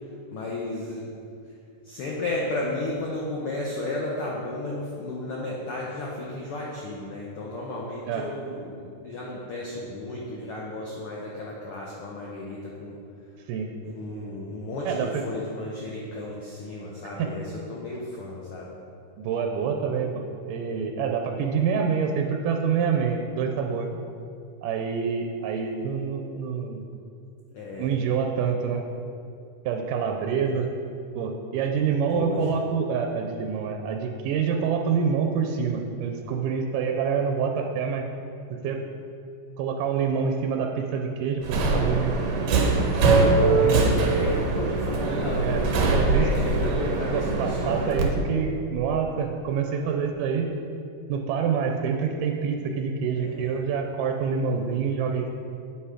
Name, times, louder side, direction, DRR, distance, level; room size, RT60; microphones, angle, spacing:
voice 1, 0.3-1.1 1.8-13.0 13.9-18.7 27.5-27.9 32.1-32.6 43.1-48.2 53.1-53.5, left 2 dB, 90° left, -3 dB, 1.2 m, -33 dB
voice 2, 14.9-15.2 17.2-17.3 19.2-23.9 24.6-26.9 27.8-28.8 29.7-30.7 31.2-38.0 38.5-38.8 39.6-42.1 43.4-43.9 45.4-45.6 45.9-46.3 47.1-50.5 51.1-55.3, right 6 dB, 85° right, 3 dB, 2.2 m, -26 dB
Subway metro underground, 41.4-48.0, right 3 dB, 70° right, 1.8 m, -22 dB
7.9 x 5.6 x 4.9 m, 2.5 s
omnidirectional pair, 3.7 m